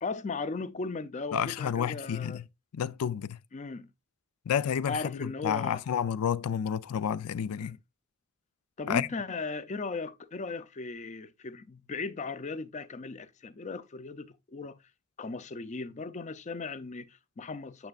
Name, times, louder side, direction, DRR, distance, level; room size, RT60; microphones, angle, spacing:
voice 1, 0.0-2.4 3.5-3.9 4.9-5.8 7.6-7.8 8.8-14.8 15.2-17.9, left 4 dB, 35° left, 0.5 m, -37 dB
voice 2, 1.3-2.4 2.7-3.4 4.5-7.8 8.9-9.1, left 8 dB, 90° left, 0.4 m, -30 dB
9.0 x 5.9 x 2.4 m
head